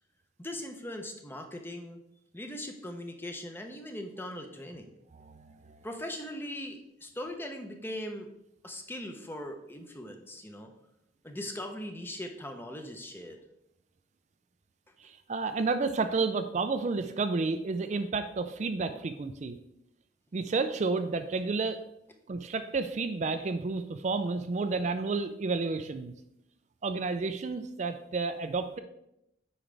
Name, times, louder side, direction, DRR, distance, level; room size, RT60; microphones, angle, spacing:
voice 1, 0.4-2.0 2.3-4.9 5.8-8.3 8.6-10.7 11.2-13.4, left 1 dB, 10° left, 4 dB, 0.7 m, -40 dB
voice 2, 5.1-5.8 15.0-19.6 20.3-21.8 22.3-26.1 26.8-28.8, right 3 dB, 40° right, 9 dB, 0.4 m, -31 dB
8.8 x 5.0 x 3.3 m, 0.82 s
head